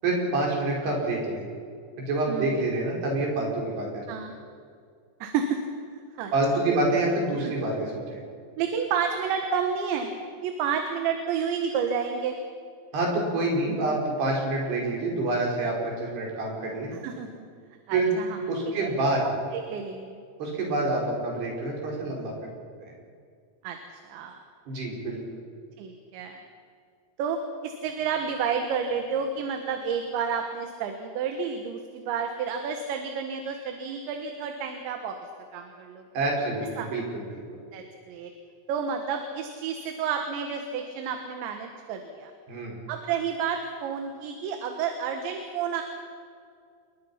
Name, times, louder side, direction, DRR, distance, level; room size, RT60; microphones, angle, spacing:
voice 1, 0.0-1.5 2.0-4.0 6.3-8.2 12.9-16.9 17.9-18.1 18.5-19.3 20.4-22.3 24.7-25.2 36.1-37.4 42.5-42.8, right 2 dB, 60° right, -2 dB, 7.3 m, -27 dB
voice 2, 2.3-2.7 4.1-4.3 5.2-5.6 6.2-6.3 6.7-6.8 7.5-7.6 8.6-10.1 10.4-12.4 16.9-17.5 17.9-18.4 18.8-18.9 19.5-20.2 23.6-24.4 25.8-26.4 27.2-35.2 35.5-36.0 36.8-36.9 37.7-38.3 38.7-42.3 42.9-45.8, right 6 dB, 75° right, 5 dB, 3.7 m, -30 dB
28.0 x 22.0 x 5.8 m, 2.2 s
omnidirectional pair, 5.3 m